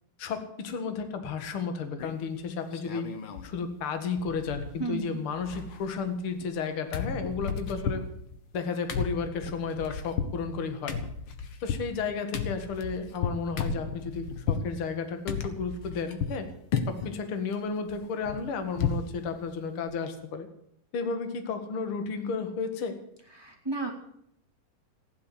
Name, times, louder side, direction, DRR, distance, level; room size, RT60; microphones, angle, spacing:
voice 1, 0.2-3.1 3.4-8.1 8.5-11.0 11.6-16.5 16.9-20.5 20.9-23.0, left 5 dB, 45° left, 7 dB, 2.2 m, -33 dB
sound 1, 2.0-2.4 2.7-3.5 3.8-3.9 4.2-5.0 5.3-6.6 6.9-14.7 15.3-16.4 16.7-17.2 17.5-19.1 19.5-19.6 19.9-20.1, left 6 dB, 65° left, 1.3 m, -34 dB
voice 2, 4.8-5.3 23.3-23.9, right 3 dB, 10° right, 2 dB, 1.9 m, -33 dB
15.5 x 10.5 x 8.4 m, 0.72 s
omnidirectional pair, 4.2 m